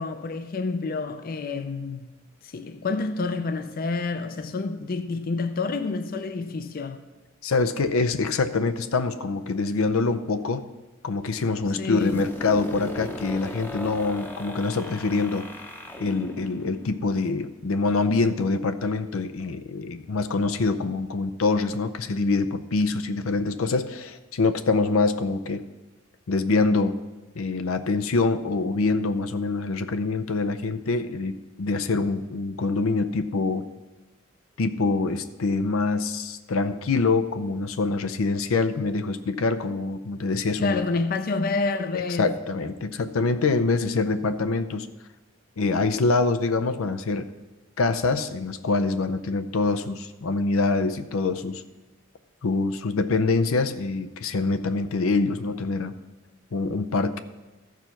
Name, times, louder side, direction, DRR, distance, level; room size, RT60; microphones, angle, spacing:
voice 1, 0.0-2.1 2.4-7.0 11.8-12.3 40.6-42.4, left 3 dB, 45° left, 0.5 m, -28 dB
voice 2, 7.4-10.7 11.0-15.5 16.0-25.6 26.3-27.0 27.3-33.7 34.6-40.8 41.9-44.9 45.6-47.3 47.8-51.6 52.4-55.9 56.5-57.2, left 3 dB, 90° left, 0.6 m, -25 dB
sound 1, 12.0-17.7, left 1 dB, 10° left, 0.7 m, -38 dB
14.0 x 4.8 x 5.8 m
head